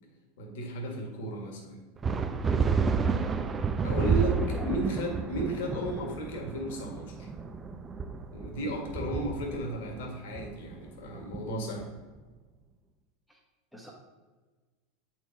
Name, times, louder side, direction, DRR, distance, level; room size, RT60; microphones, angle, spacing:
voice 1, 0.4-1.8 3.8-7.3 8.3-11.8, right 1 dB, 70° left, 2 dB, 1.6 m, -34 dB
sound 1, 2.0-12.0, right 5 dB, 25° right, 0.6 m, -30 dB
voice 2, 4.1-4.7 13.3-13.4 13.7-13.9, equal, ahead, -1 dB, 1.2 m, -40 dB
8.0 x 4.6 x 3.9 m, 1.3 s
hypercardioid pair, 90°, 0 cm